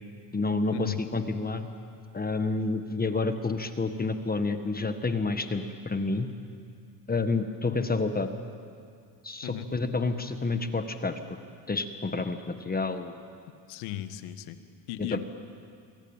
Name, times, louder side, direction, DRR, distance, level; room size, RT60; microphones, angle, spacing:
voice 1, 0.3-1.7 2.1-6.3 7.1-8.3 9.2-11.2 11.7-13.2 15.1-15.2, left 3 dB, 20° left, 8 dB, 1.5 m, -29 dB
voice 2, 13.7-14.6 14.9-15.2, left 12 dB, 85° left, 10 dB, 1.7 m, -36 dB
26.5 x 22.0 x 9.0 m, 2.3 s
cardioid pair, 105°, 48 cm